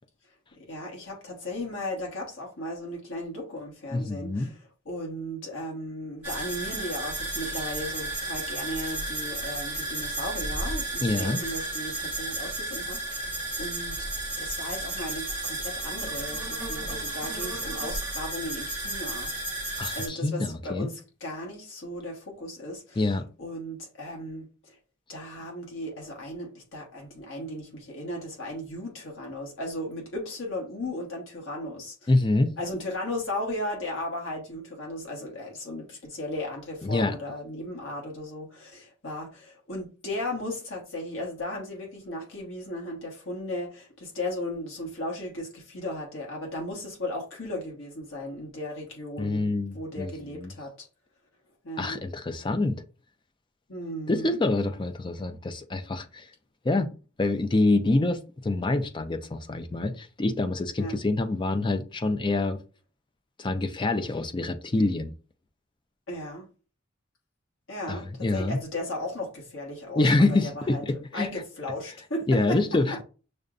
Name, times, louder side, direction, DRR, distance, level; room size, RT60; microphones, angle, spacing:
voice 1, 0.7-14.1 14.4-19.6 19.9-23.1 23.4-24.8 25.1-32.1 32.6-50.9 51.6-52.0 53.7-54.4 60.8-61.0 66.1-66.5 67.7-70.1 70.4-70.8 71.1-72.6, left 1 dB, 90° left, 1.2 m, -36 dB
voice 2, 3.9-4.5 11.0-11.4 19.8-20.9 23.0-23.3 32.1-32.5 36.8-37.1 49.2-50.5 51.8-52.8 54.1-56.3 56.6-56.9 57.2-62.6 63.4-65.1 67.9-68.6 70.0-71.3 72.3-73.0, left 2 dB, 25° left, 0.4 m, -26 dB
sound 1, 6.2-20.1, right 2 dB, 10° right, 1.3 m, -33 dB
6.5 x 2.2 x 2.4 m
head